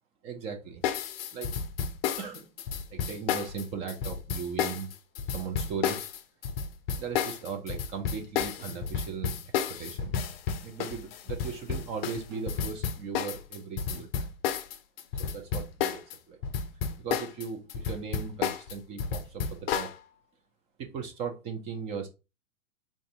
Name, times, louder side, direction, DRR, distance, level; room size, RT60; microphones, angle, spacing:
voice 1, 0.2-0.9 1.3-1.5 2.2-2.5 2.9-4.9 5.3-6.0 6.9-9.4 9.7-10.2 10.6-14.3 15.2-16.4 17.0-19.9 20.8-22.1, right 6 dB, 15° right, 4 dB, 0.4 m, -38 dB
sound 1, 0.8-16.2 16.4-19.9, left 7 dB, 45° left, 0.5 m, -31 dB
sound 2, 8.6-9.6 12.3-12.9 13.9-14.0, equal, 45° right, 1.4 m, -50 dB
3.6 x 2.6 x 3.7 m, 0.28 s
hypercardioid pair, 120°, 42 cm